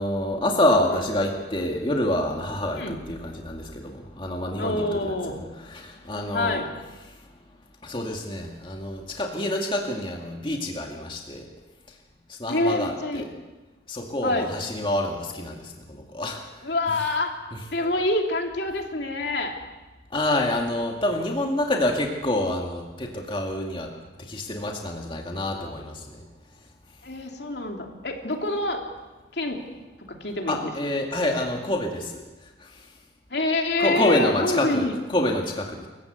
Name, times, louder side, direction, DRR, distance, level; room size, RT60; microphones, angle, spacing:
voice 1, 0.0-6.6 7.0-7.2 7.8-11.4 12.3-13.2 13.9-16.4 16.9-17.0 17.5-17.6 20.1-23.9 24.2-26.2 30.5-32.2 32.6-32.8 33.8-35.9, left 1 dB, 30° left, 1 dB, 2.1 m, -27 dB
voice 2, 0.7-1.0 2.8-3.0 4.6-5.4 6.3-6.7 12.5-13.2 14.2-14.5 16.6-17.3 17.7-19.6 27.0-28.8 29.3-29.6 30.1-30.7 33.3-34.9, left 2 dB, 65° left, 3 dB, 3.0 m, -26 dB
27.5 x 15.5 x 8.1 m, 1.2 s
head